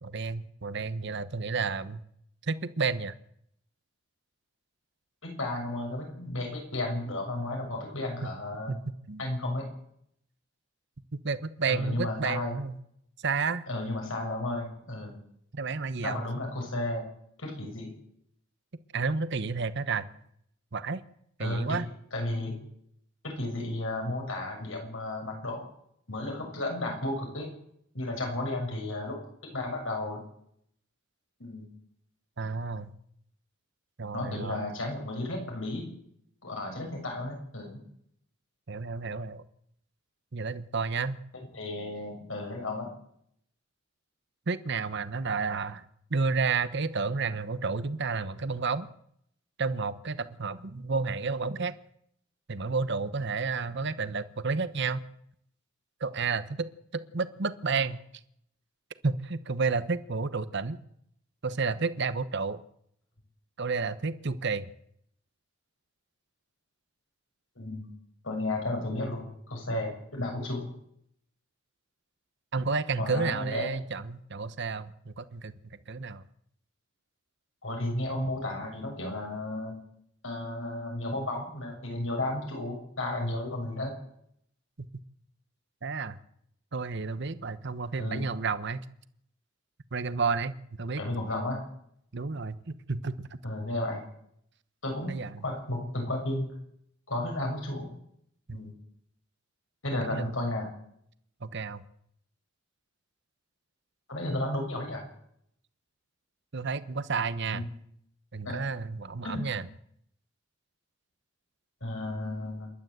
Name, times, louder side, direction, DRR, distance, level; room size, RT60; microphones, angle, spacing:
voice 1, 0.0-2.0 2.4-3.1 8.2-8.3 8.7-8.8 9.1-9.2 11.2-12.8 13.2-13.6 15.5-16.2 18.9-20.1 20.7-21.0 21.4-21.9 32.4-32.9 34.0-34.6 38.7-39.4 40.3-41.2 44.5-45.8 46.1-48.9 49.6-51.7 52.5-55.0 56.0-58.0 59.0-60.8 61.4-62.6 63.6-64.6 72.5-76.2 85.8-86.2 86.7-88.8 89.9-91.0 92.1-93.3 95.1-95.4 98.5-98.6 100.0-100.3 101.4-101.8 106.5-107.7 108.3-109.6, right 4 dB, 60° right, 14 dB, 1.0 m, -31 dB
voice 2, 5.2-8.8 9.2-9.7 11.7-12.6 13.7-15.2 16.0-17.0 17.4-17.9 21.4-21.8 22.1-22.5 23.2-25.7 26.1-27.5 27.9-29.2 29.5-30.2 31.4-31.7 34.1-35.9 36.4-37.8 41.5-42.9 57.7-57.8 67.5-67.9 68.2-70.7 73.0-73.7 77.6-79.8 80.2-83.9 88.0-88.3 91.0-91.6 93.4-94.0 94.8-96.5 97.1-97.9 98.5-98.7 99.8-100.7 104.1-105.1 107.5-107.7 108.4-108.6 109.2-109.4 111.8-112.7, left 1 dB, 75° left, 2 dB, 6.9 m, -33 dB
27.5 x 12.0 x 8.0 m, 0.73 s
head